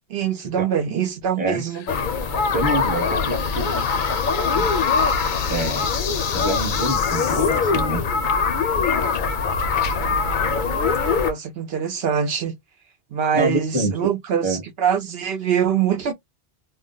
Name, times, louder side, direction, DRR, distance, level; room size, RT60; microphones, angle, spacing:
voice 1, 0.1-1.8 11.2-12.5 13.1-16.1, right 8 dB, 75° right, 0.8 m, -23 dB
sound 1, 1.7-7.6, left 8 dB, 85° left, 0.9 m, -34 dB
sound 2, 1.9-11.3, left 5 dB, 60° left, 0.6 m, -22 dB
voice 2, 2.5-3.9 4.6-4.7 5.5-5.9 6.3-8.0 13.3-13.9 14.4-14.6, right 1 dB, 10° right, 0.8 m, -26 dB
2.3 x 2.1 x 3.7 m
omnidirectional pair, 1.0 m